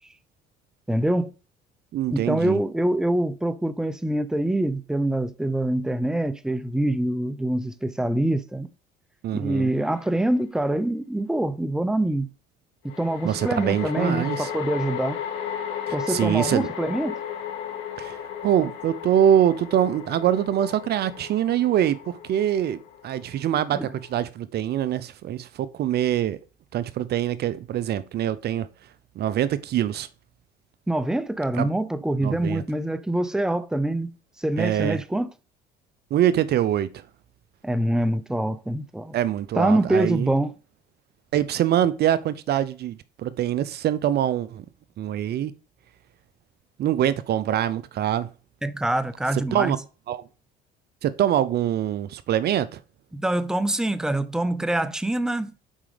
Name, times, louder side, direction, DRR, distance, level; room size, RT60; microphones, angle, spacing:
voice 1, 0.9-1.3 2.1-8.7 9.3-12.3 12.8-15.2 15.9-17.2 23.7-23.9 30.9-34.1 34.4-35.3 37.6-39.1 39.5-40.5 48.6-49.8 53.1-55.5, right 1 dB, 5° right, 0.7 m, -25 dB
voice 2, 1.9-2.6 9.2-9.7 13.2-14.5 15.9-16.7 18.0-22.8 23.0-26.4 26.7-28.7 29.2-30.1 31.6-31.7 32.2-32.6 34.6-35.0 36.1-37.0 39.1-40.3 41.3-44.6 45.0-45.5 46.8-48.3 49.5-49.8 50.1-50.2 51.0-52.8, right 10 dB, 55° right, 0.6 m, -24 dB
sound 1, 9.9-10.0 12.9-24.2, left 9 dB, 80° left, 1.5 m, -35 dB
7.3 x 4.9 x 5.1 m
supercardioid pair, 80°, 20 cm